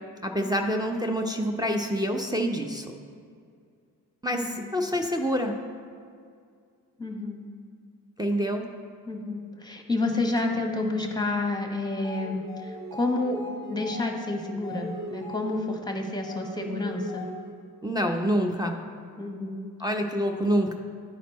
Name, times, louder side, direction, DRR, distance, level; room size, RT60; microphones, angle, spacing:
voice 1, 0.2-2.8 4.2-5.5 8.2-8.7 17.8-18.8 19.8-20.7, equal, 10° right, 1 dB, 0.7 m, -26 dB
voice 2, 4.3-4.7 7.0-7.4 9.0-13.4 13.7-17.3 19.2-19.7, left 2 dB, 10° left, 3 dB, 1.2 m, -30 dB
sound 1, 11.9-17.7, left 1 dB, 60° right, 1.3 m, -39 dB
10.5 x 4.3 x 4.1 m, 2.2 s
hypercardioid pair, 45°, 43 cm